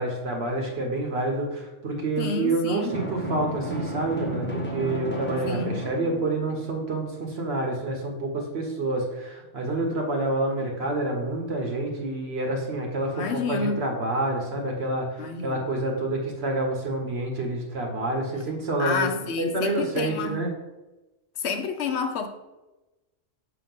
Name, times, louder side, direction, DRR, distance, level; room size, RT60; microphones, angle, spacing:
voice 1, 0.0-19.1 19.4-20.5, right 2 dB, 55° right, 1 dB, 1.2 m, -28 dB
voice 2, 2.2-2.9 5.5-5.8 13.1-13.8 15.2-15.7 18.8-20.4 21.4-22.3, left 5 dB, 60° left, 7 dB, 0.9 m, -29 dB
Drum, 2.9-6.7, right 1 dB, 10° left, 0.7 m, -32 dB
6.7 x 3.0 x 5.3 m, 1.1 s
omnidirectional pair, 1.3 m